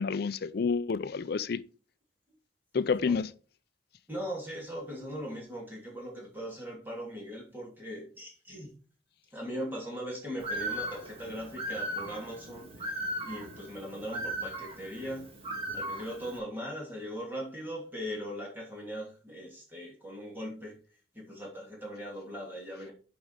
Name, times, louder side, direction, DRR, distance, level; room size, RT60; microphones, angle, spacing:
voice 1, 0.0-1.6 2.7-3.3, left 5 dB, 55° left, 0.4 m, -29 dB
voice 2, 4.1-8.7 9.3-15.3 15.7-20.8 21.1-22.9, equal, 10° right, 2.6 m, -40 dB
Bird, 10.4-16.4, right 1 dB, 30° right, 1.7 m, -37 dB
7.1 x 5.2 x 5.0 m
head